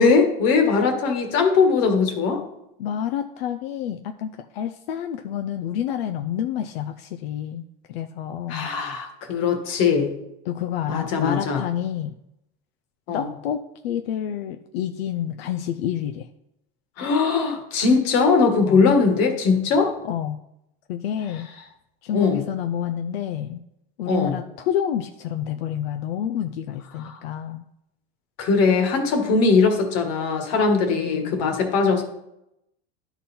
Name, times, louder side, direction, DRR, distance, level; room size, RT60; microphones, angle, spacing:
voice 1, 0.0-2.4 8.5-10.1 10.9-11.6 13.1-13.3 17.0-19.9 22.1-22.4 24.1-24.4 27.0-27.2 28.4-32.0, left 4 dB, 55° left, 5 dB, 1.6 m, -20 dB
voice 2, 2.8-8.7 10.5-12.2 13.1-16.3 18.6-18.8 20.0-20.4 20.9-21.5 22.0-23.6 24.0-27.6 30.9-31.4, left 9 dB, 90° left, 7 dB, 0.5 m, -29 dB
11.5 x 4.0 x 4.2 m, 0.84 s
supercardioid pair, 120°, 29 cm